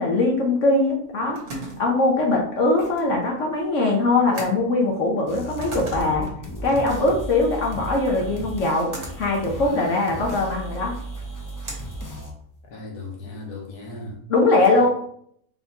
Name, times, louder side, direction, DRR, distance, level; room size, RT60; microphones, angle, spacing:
voice 1, 0.0-1.4 1.8-6.3 6.6-8.9 9.2-11.0 14.3-14.9, left 2 dB, 60° left, 0 dB, 1.0 m, -21 dB
sound 1, 0.9-12.8, right 1 dB, 80° right, 1.7 m, -41 dB
sound 2, 5.3-12.3, right 1 dB, 30° left, 0.3 m, -35 dB
voice 2, 12.7-14.3 14.7-14.9, left 2 dB, 90° left, 0 dB, 1.6 m, -37 dB
4.1 x 3.9 x 2.8 m, 0.66 s
omnidirectional pair, 1.6 m